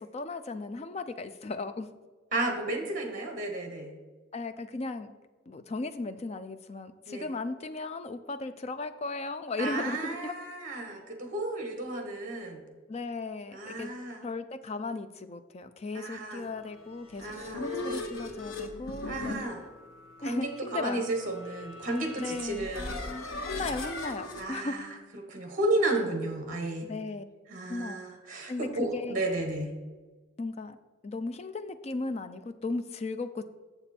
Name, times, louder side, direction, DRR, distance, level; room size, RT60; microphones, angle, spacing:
voice 1, 0.0-1.9 4.3-5.1 5.5-10.3 12.9-13.9 14.2-17.3 17.7-19.5 20.2-21.1 22.2-22.7 23.4-24.8 26.8-27.2 27.7-28.0 28.5-29.2 30.4-30.8 31.0-33.4, left 3 dB, 30° left, 10 dB, 0.4 m, -36 dB
voice 2, 2.3-3.9 7.1-7.3 9.6-12.6 13.5-14.2 15.9-16.5 17.2-17.7 19.0-19.6 20.2-22.9 24.3-26.9 27.5-29.7, right 2 dB, 40° right, 3 dB, 1.2 m, -33 dB
sound 1, 16.9-24.4, left 2 dB, 90° left, 1.0 m, -39 dB
7.0 x 7.0 x 4.3 m, 1.3 s
head